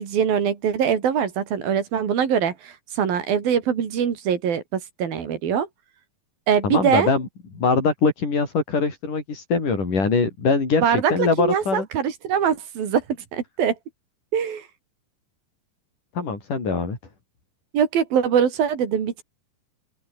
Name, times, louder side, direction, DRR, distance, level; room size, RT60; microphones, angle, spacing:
voice 1, 0.0-5.7 6.5-7.1 10.8-13.0 13.3-13.8 14.3-14.7 17.7-19.2, right 8 dB, 85° right, 4.9 m, -23 dB
voice 2, 6.6-7.3 7.5-11.9 16.2-17.0, left 4 dB, 60° left, 7.7 m, -22 dB
open air
omnidirectional pair, 4.1 m